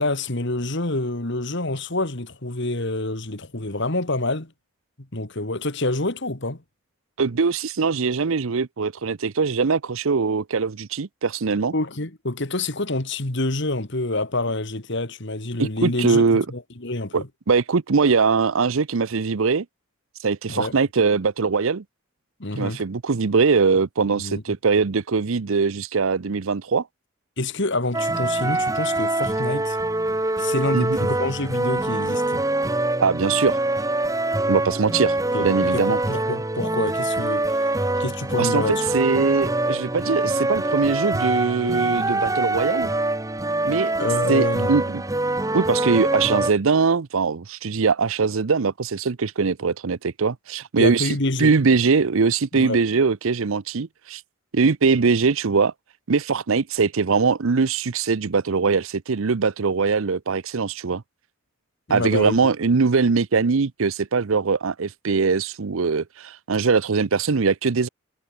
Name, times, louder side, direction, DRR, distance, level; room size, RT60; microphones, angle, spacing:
voice 1, 0.0-4.5 5.0-6.6 11.7-16.2 16.5-17.3 20.5-20.8 22.4-22.8 24.1-24.4 27.4-29.8 30.4-32.4 35.3-37.6 38.0-38.8 44.0-44.7 50.8-51.5 52.5-52.8 61.9-62.4, left 2 dB, 55° left, 2.2 m, -27 dB
voice 2, 7.2-11.7 15.6-16.4 17.1-19.7 20.2-21.8 22.6-26.9 30.7-31.0 33.0-33.6 34.5-35.2 35.4-36.0 38.4-42.9 43.6-43.9 44.3-45.0 45.5-54.2 54.5-55.7 56.1-61.0 61.9-67.9, right 4 dB, 70° right, 0.6 m, -21 dB
sound 1, 27.9-46.5, right 2 dB, 15° right, 1.2 m, -24 dB
head